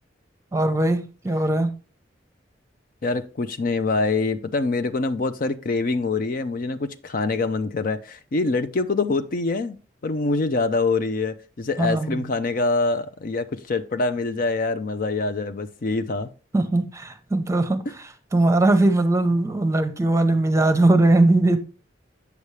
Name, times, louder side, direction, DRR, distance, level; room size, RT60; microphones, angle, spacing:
voice 1, 0.5-1.7 11.8-12.3 16.5-17.8 18.3-21.6, right 2 dB, 15° right, 0.8 m, -20 dB
voice 2, 3.0-9.8 10.0-16.3, left 3 dB, 50° left, 0.5 m, -25 dB
8.2 x 6.9 x 3.2 m
head